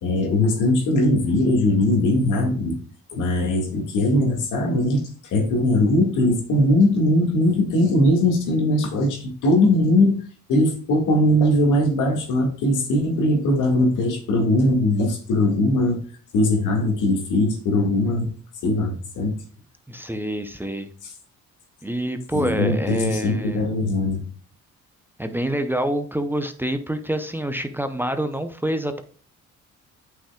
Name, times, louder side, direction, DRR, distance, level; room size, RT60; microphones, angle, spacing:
voice 1, 0.0-2.8 3.1-10.2 10.5-16.0 16.3-18.3 18.6-19.4 21.0-21.1 22.3-24.2, left 1 dB, 85° left, 2 dB, 2.0 m, -20 dB
voice 2, 19.9-20.9 21.8-23.6 25.2-29.0, right 1 dB, 5° right, 8 dB, 0.6 m, -26 dB
8.5 x 5.7 x 2.3 m, 0.42 s
cardioid pair, 90°, 30 cm